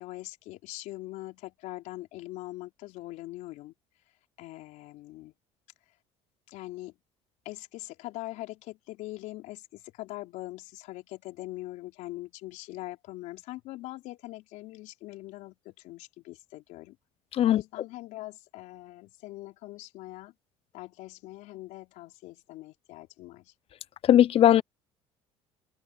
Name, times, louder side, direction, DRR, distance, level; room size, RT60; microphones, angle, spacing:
voice 1, 0.0-3.7 4.4-5.3 6.5-6.9 7.5-17.0 17.5-20.3 20.7-23.5, left 18 dB, 70° left, 4.0 m, -42 dB
voice 2, 24.0-24.6, left 11 dB, 45° left, 0.6 m, -19 dB
supercardioid pair, 75°, 13 cm